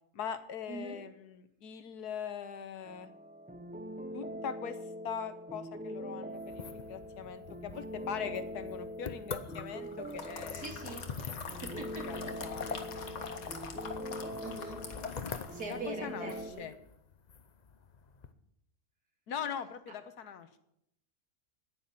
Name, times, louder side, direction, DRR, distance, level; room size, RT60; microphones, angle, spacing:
voice 1, 0.1-3.1 4.1-4.8 5.0-10.6 12.1-12.8 15.7-16.3 16.6-16.7 19.3-20.6, left 7 dB, 80° left, 11 dB, 1.6 m, -41 dB
voice 2, 0.7-1.0 10.5-11.1 11.4-12.2 12.6-13.1 14.4-14.8 15.5-16.7, right 2 dB, 75° right, 2 dB, 3.0 m, -43 dB
sound 1, 2.8-16.5, equal, 10° right, 0.5 m, -43 dB
sound 2, 6.4-18.3, left 5 dB, 40° left, 0.6 m, -44 dB
sound 3, 9.8-15.9 16.2-16.4, left 5 dB, 65° left, 1.9 m, -47 dB
10.0 x 9.9 x 7.5 m, 0.76 s
omnidirectional pair, 1.6 m